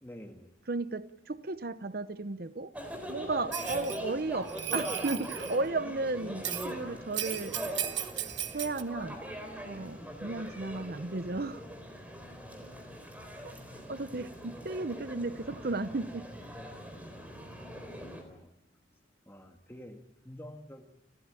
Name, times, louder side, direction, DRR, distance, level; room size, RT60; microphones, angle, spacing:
voice 1, 0.0-0.6 18.1-18.5 19.3-20.8, equal, 10° left, 2.1 m, -48 dB
voice 2, 0.7-2.7 3.1-7.6 8.5-9.2 9.6-11.6 13.4-13.5 13.9-16.3, right 3 dB, 50° right, 0.7 m, -34 dB
sound 1, 2.7-18.2, equal, 10° right, 4.0 m, -41 dB
Bell, 3.5-4.0 4.5-5.6 6.4-6.7 7.1-8.8, right 11 dB, 70° right, 1.4 m, -36 dB
29.5 x 14.5 x 9.0 m
head